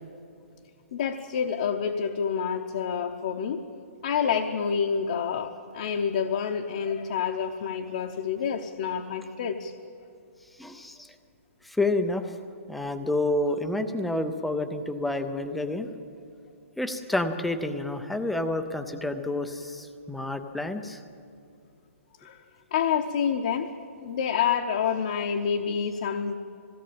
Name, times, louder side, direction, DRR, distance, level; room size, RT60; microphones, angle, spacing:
voice 1, 0.9-3.6 4.0-9.7 22.2-22.4 22.7-23.7 24.0-26.4, left 7 dB, 35° left, 4 dB, 0.8 m, -28 dB
voice 2, 10.6-11.1 11.6-12.3 12.7-15.9 16.8-21.0, left 2 dB, ahead, 8 dB, 0.4 m, -29 dB
20.5 x 17.0 x 8.7 m, 2.6 s
hypercardioid pair, 180°, 8 cm